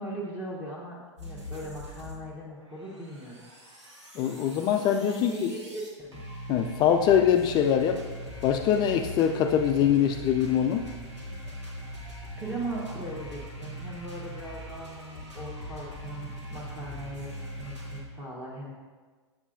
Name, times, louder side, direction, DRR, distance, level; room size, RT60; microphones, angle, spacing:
voice 1, 0.0-3.5 5.0-6.2 12.3-18.7, right 1 dB, 10° right, -6 dB, 1.1 m, -39 dB
sound 1, 1.2-2.1 2.4-18.0, equal, 80° right, 1.9 m, -41 dB
voice 2, 4.2-5.5 6.5-8.0 8.4-10.9, left 9 dB, 30° left, 6 dB, 0.3 m, -23 dB
7.6 x 7.1 x 2.5 m, 1.4 s
figure-of-eight pair, 100°, 15 cm